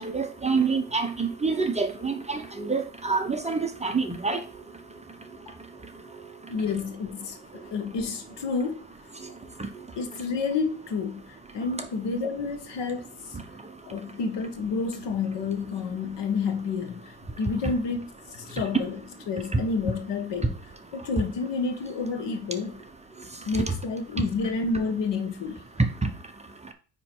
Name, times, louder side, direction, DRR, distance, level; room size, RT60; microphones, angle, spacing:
voice 1, 0.0-4.4, right 4 dB, 15° right, 0.7 m, -27 dB
voice 2, 6.5-8.9 9.9-13.4 13.8-19.0 19.3-20.5 20.9-22.8 23.4-25.6, left 4 dB, 75° left, 1.4 m, -30 dB
9.2 x 3.1 x 4.5 m
cardioid pair, 145°, 43 cm